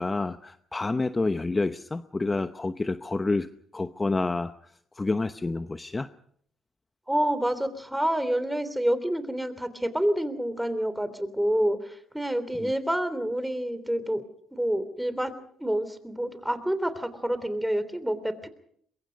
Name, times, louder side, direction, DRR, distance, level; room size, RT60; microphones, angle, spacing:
voice 1, 0.0-6.1 12.5-12.7, left 3 dB, 25° left, 11 dB, 0.8 m, -29 dB
voice 2, 7.1-14.2 14.5-15.3 15.6-18.5, right 1 dB, 5° right, 12 dB, 3.2 m, -28 dB
23.0 x 22.0 x 5.3 m, 0.64 s
supercardioid pair, 75°, 0 cm